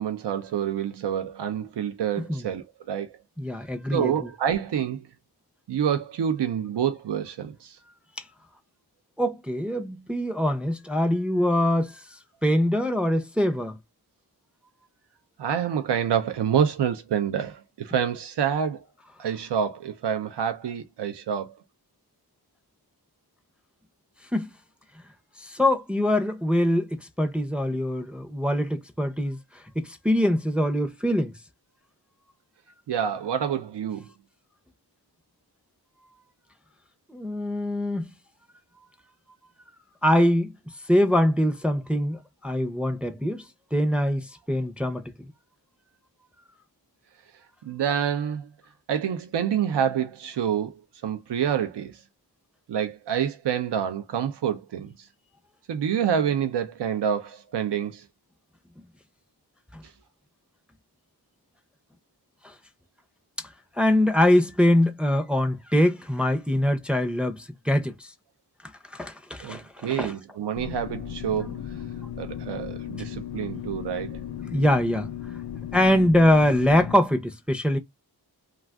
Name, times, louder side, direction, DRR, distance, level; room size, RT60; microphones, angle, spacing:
voice 1, 0.0-3.2 3.9-5.0 5.7-7.8 15.4-18.8 19.2-21.6 32.9-34.1 47.6-48.5 48.9-52.0 52.7-55.1 55.7-58.0 59.8-59.9 69.4-71.8 72.2-74.2, right 8 dB, 85° right, 0.5 m, -27 dB
voice 2, 3.4-4.3 9.2-12.0 12.4-13.8 24.3-24.5 25.4-31.3 37.1-38.1 40.0-40.5 40.9-43.4 43.7-45.0 59.7-59.8 62.4-62.5 63.8-68.1 68.9-70.1 71.4-71.5 72.0-72.1 74.3-75.1 75.7-77.8, left 1 dB, 5° right, 0.5 m, -23 dB
sound 1, 70.6-77.0, left 9 dB, 70° left, 0.6 m, -36 dB
2.4 x 2.4 x 3.4 m
wide cardioid pair, 65°, 40 cm